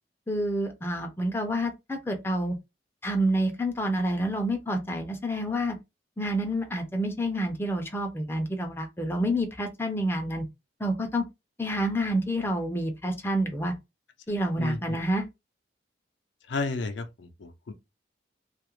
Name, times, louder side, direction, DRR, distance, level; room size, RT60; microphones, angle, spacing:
voice 1, 0.3-2.5 3.0-5.8 6.2-10.4 10.8-11.2 11.6-13.7 14.3-15.3, equal, 15° left, 0.4 m, -28 dB
voice 2, 16.5-17.7, left 3 dB, 80° left, 0.5 m, -32 dB
2.3 x 2.0 x 2.9 m
head